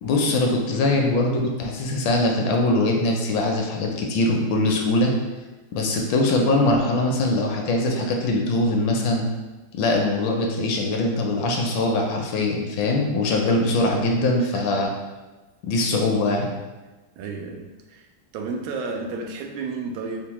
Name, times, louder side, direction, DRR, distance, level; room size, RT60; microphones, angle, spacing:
voice 1, 0.0-5.1 5.7-9.3 9.7-14.9 15.6-16.5, left 2 dB, 75° left, 1 dB, 1.2 m, -22 dB
voice 2, 14.4-14.8 17.2-18.1 18.3-20.2, right 4 dB, 85° right, 3 dB, 1.4 m, -32 dB
5.1 x 2.0 x 2.9 m, 1.2 s
omnidirectional pair, 2.2 m